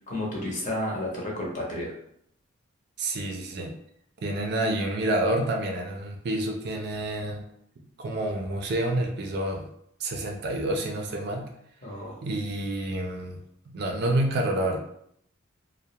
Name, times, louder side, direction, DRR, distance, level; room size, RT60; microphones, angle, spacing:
voice 1, 0.1-1.9 11.8-12.2, left 1 dB, 40° left, -3 dB, 0.7 m, -31 dB
voice 2, 3.0-3.7 4.2-7.4 8.0-9.7 10.0-11.5 12.2-13.4 13.7-14.8, right 1 dB, 55° right, 2 dB, 0.4 m, -28 dB
2.2 x 2.0 x 2.8 m, 0.69 s
head